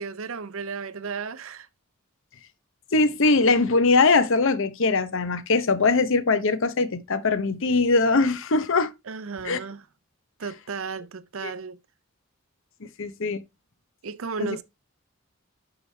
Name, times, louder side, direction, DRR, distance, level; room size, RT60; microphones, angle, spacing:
voice 1, 0.0-1.7 9.1-9.8 10.4-11.8 14.0-14.6, right 5 dB, 75° right, 0.7 m, -34 dB
voice 2, 2.9-8.9 9.4-9.6 11.4-11.5 13.0-13.4 14.4-14.6, left 3 dB, 65° left, 0.8 m, -21 dB
11.0 x 4.9 x 3.3 m
head